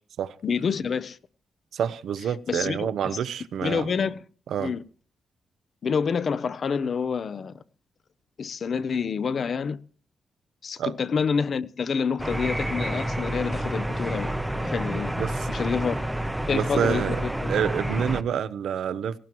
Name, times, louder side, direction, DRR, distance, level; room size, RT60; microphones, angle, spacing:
voice 1, 0.4-1.2 2.5-3.2 3.6-4.2 4.6-4.8 5.8-7.6 8.4-9.8 10.6-15.1 15.5-16.0 16.5-17.5, left 6 dB, 45° left, 0.6 m, -28 dB
voice 2, 1.7-3.9 4.5-4.7 10.8-10.9 15.2-15.5 16.5-17.2 17.5-19.2, right 8 dB, 80° right, 0.7 m, -28 dB
sound 1, 12.2-18.2, right 1 dB, 5° right, 0.7 m, -29 dB
18.0 x 17.5 x 3.0 m
wide cardioid pair, 160°, 0 cm